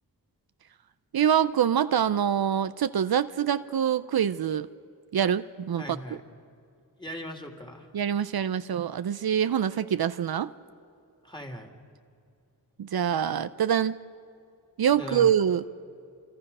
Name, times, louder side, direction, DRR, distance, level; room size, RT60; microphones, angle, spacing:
voice 1, 1.1-4.7 5.1-6.0 7.9-10.5 12.8-14.0 14.8-15.6, right 9 dB, 70° right, 13 dB, 0.6 m, -25 dB
voice 2, 5.8-6.2 7.0-7.9 11.2-11.7 14.9-15.3, equal, 10° left, 2 dB, 2.8 m, -39 dB
28.5 x 25.5 x 5.5 m, 2.5 s
wide cardioid pair, 65°, 38 cm